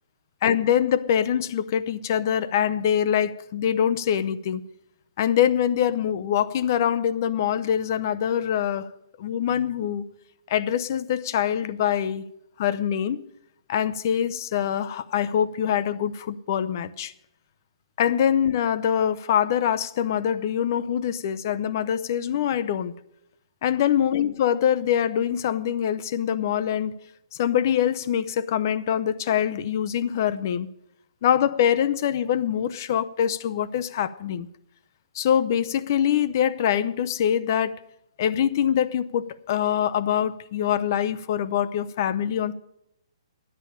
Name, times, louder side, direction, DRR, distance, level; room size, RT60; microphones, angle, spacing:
voice 1, 0.4-4.6 5.2-8.9 9.2-10.0 10.5-12.2 12.6-13.2 13.7-17.1 18.0-22.9 23.6-27.0 27.4-30.7 31.2-34.5 35.1-37.9 38.2-42.5, left 9 dB, 35° left, 0.6 m, -24 dB
10.5 x 8.7 x 9.9 m
hypercardioid pair, 170°, 3 cm